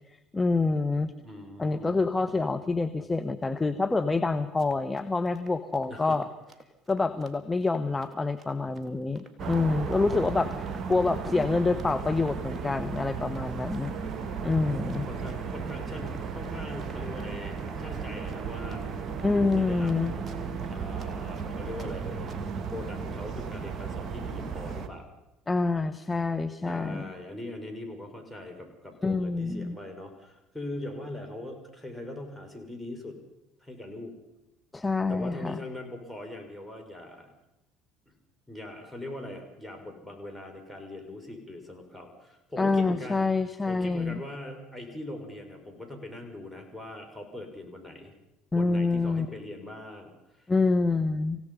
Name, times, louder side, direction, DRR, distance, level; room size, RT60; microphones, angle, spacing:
voice 1, 0.1-1.1 1.6-6.3 6.9-10.5 10.9-13.9 14.4-15.1 19.2-20.1 25.5-27.0 29.0-29.7 34.7-35.6 42.6-44.2 48.5-49.3 50.5-51.4, left 3 dB, 15° left, 9 dB, 1.2 m, -27 dB
voice 2, 1.2-2.0 5.9-6.2 10.0-10.2 14.9-19.9 20.6-22.4 22.7-25.1 26.7-33.2 33.6-34.2 35.1-37.3 38.1-38.2 38.5-43.2 43.7-48.1 48.5-50.5, left 1 dB, ahead, 4 dB, 6.0 m, -41 dB
Run, 4.4-21.9 22.3-22.6, right 2 dB, 25° right, 3.2 m, -55 dB
sound 1, 9.4-24.9, right 5 dB, 45° right, 2.1 m, -35 dB
27.5 x 17.0 x 5.6 m, 0.96 s
hypercardioid pair, 65°, 0 cm